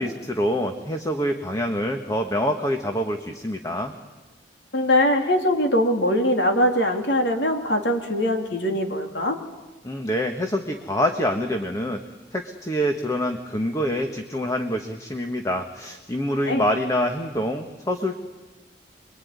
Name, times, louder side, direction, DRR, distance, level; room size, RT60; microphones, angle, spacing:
voice 1, 0.0-3.9 9.8-12.0 12.3-18.2, equal, 20° left, 4 dB, 1.4 m, -26 dB
voice 2, 4.7-9.4 16.5-16.6, left 1 dB, 70° left, 4 dB, 3.3 m, -22 dB
27.0 x 23.0 x 9.6 m, 1.2 s
head